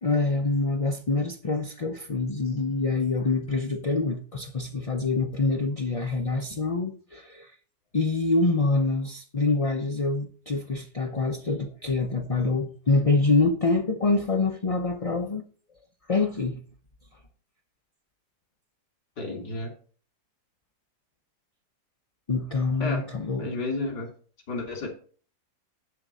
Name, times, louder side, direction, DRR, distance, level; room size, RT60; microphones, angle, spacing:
voice 1, 0.0-7.5 7.9-15.4 16.1-16.6 22.3-23.5, left 3 dB, 40° left, 0.5 m, -25 dB
voice 2, 19.2-19.7 22.8-23.1 23.4-24.1 24.5-24.9, left 2 dB, 90° left, 3.4 m, -31 dB
10.5 x 3.8 x 6.8 m
omnidirectional pair, 1.8 m